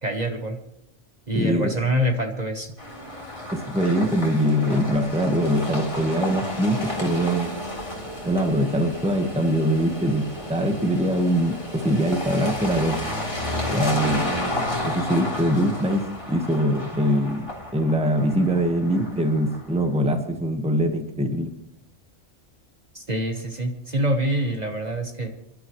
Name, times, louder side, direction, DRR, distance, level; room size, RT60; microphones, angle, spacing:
voice 1, 0.0-0.6 1.3-2.7 22.9-25.3, right 1 dB, 35° right, 4 dB, 1.4 m, -25 dB
voice 2, 1.3-1.7 3.5-7.5 8.2-13.0 13.7-14.3 14.8-17.5 17.7-21.5, equal, 5° right, 5 dB, 1.3 m, -23 dB
sound 1, 2.8-19.8, left 1 dB, 25° left, 3.3 m, -32 dB
29.0 x 11.5 x 3.2 m, 0.80 s
omnidirectional pair, 1.3 m